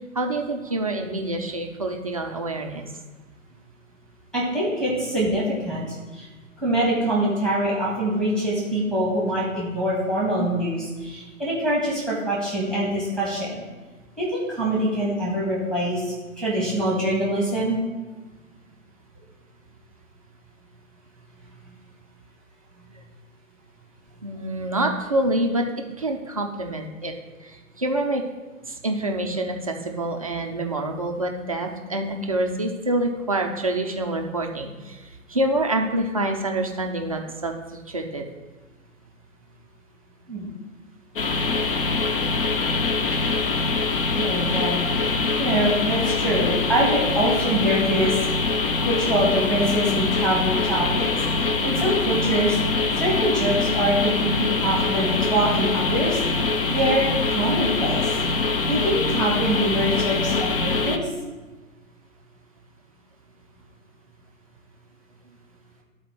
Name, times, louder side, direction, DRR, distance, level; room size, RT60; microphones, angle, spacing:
voice 1, 0.1-2.9 24.2-27.1 27.4-28.2 28.7-38.2, right 1 dB, 25° right, 3 dB, 0.4 m, -26 dB
voice 2, 4.3-6.3 6.6-13.6 14.2-17.8 40.3-40.5 44.1-44.8 45.4-48.1 48.8-51.1 51.3-52.6 53.0-56.2 56.7-58.2 58.7-61.1, right 1 dB, ahead, -5 dB, 1.4 m, -24 dB
sound 1, 41.2-61.0, left 3 dB, 40° left, 0.6 m, -24 dB
12.5 x 4.2 x 4.4 m, 1.2 s
figure-of-eight pair, 130°, 42 cm